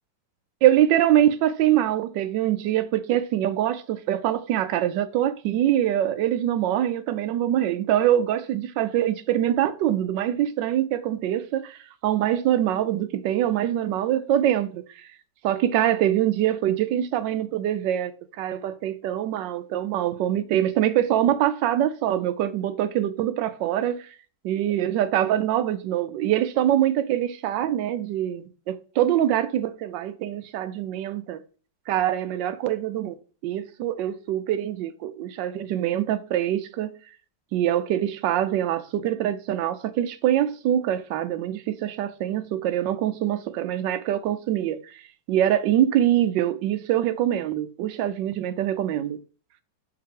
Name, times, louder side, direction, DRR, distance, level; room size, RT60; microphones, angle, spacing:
voice 1, 0.6-15.1 15.4-24.1 24.4-31.4 31.9-33.1 33.4-36.9 37.5-45.0 45.3-49.2, right 11 dB, 85° right, 1.3 m, -24 dB
6.4 x 4.7 x 3.7 m
omnidirectional pair, 1.9 m